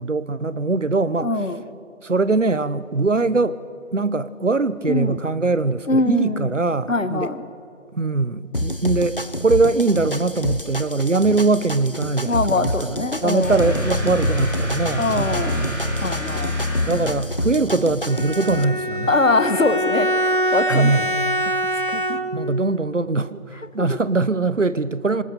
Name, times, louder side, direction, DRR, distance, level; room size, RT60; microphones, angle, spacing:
voice 1, 0.0-1.3 2.0-3.6 3.9-7.3 7.9-15.8 16.8-19.1 20.7-21.2 22.3-25.2, right 3 dB, 65° right, 16 dB, 1.0 m, -22 dB
voice 2, 1.2-1.6 4.8-5.2 5.9-6.5 6.9-7.4 12.2-13.7 15.0-15.6 16.0-16.5 19.1-21.0 21.9-22.2 23.8-23.9, left 2 dB, 75° left, 11 dB, 1.5 m, -22 dB
sound 1, 8.5-18.6, left 1 dB, 45° left, 0.6 m, -28 dB
Capital Class Signature Detected (No Reverb), 13.4-17.3, equal, 15° right, 5.2 m, -26 dB
Bowed string instrument, 18.1-22.6, equal, 40° right, 1.0 m, -24 dB
25.0 x 20.0 x 6.8 m, 2.8 s
figure-of-eight pair, 175°, 39 cm